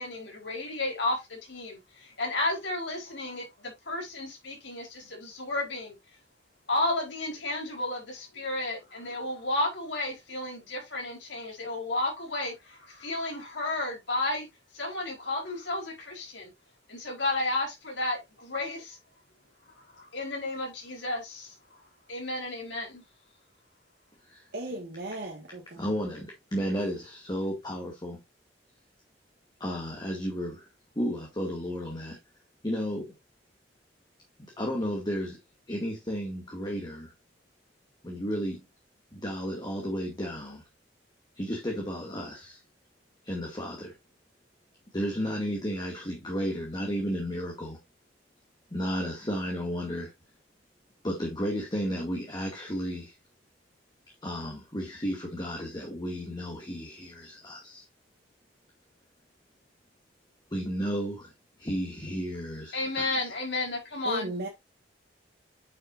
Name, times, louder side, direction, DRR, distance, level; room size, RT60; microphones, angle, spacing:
voice 1, 0.0-5.9 6.7-14.5 14.7-16.5 16.9-19.0 20.0-21.5 22.1-23.0 62.7-64.5, left 2 dB, 70° left, 4.2 m, -32 dB
voice 2, 24.5-26.0 64.0-64.5, right 1 dB, 60° right, 1.7 m, -36 dB
voice 3, 25.8-28.2 29.6-30.7 31.0-32.2 32.6-33.1 34.6-35.4 35.7-37.1 38.0-38.6 39.1-40.6 41.4-42.6 43.2-43.9 44.9-47.8 48.7-50.1 51.0-53.1 54.2-57.8 60.5-61.3 61.6-63.1, equal, 25° left, 2.2 m, -33 dB
8.7 x 6.4 x 2.6 m
head